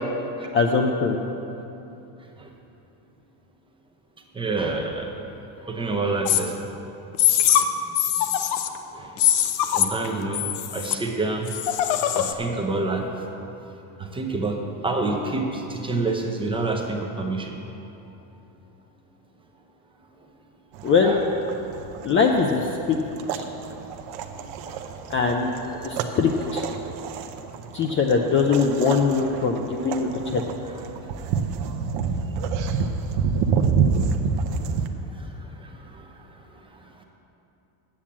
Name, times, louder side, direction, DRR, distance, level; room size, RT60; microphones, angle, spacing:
voice 1, 0.5-1.2 20.8-21.2 22.0-23.0 23.3-23.4 25.1-25.5 25.8-26.6 27.7-30.4, left 5 dB, 30° left, 2 dB, 0.4 m, -21 dB
voice 2, 4.3-5.1 5.6-6.6 7.9-8.0 8.9-9.3 9.7-10.4 10.7-11.8 12.1-13.0 14.0-17.6 21.0-21.2 24.3-24.9 25.5-26.1 34.0-34.1 35.1-36.4 36.7-36.8, right 3 dB, 10° right, 1 dB, 0.7 m, -29 dB
sound 1, 6.3-6.4 7.1-7.6 7.9-8.8 9.2-10.1 10.3-11.0 11.5-12.3, left 11 dB, 75° left, 0.8 m, -22 dB
sound 2, 20.7-34.9, right 5 dB, 65° right, 0.8 m, -28 dB
8.6 x 7.2 x 7.3 m, 3.0 s
cardioid pair, 145°, 47 cm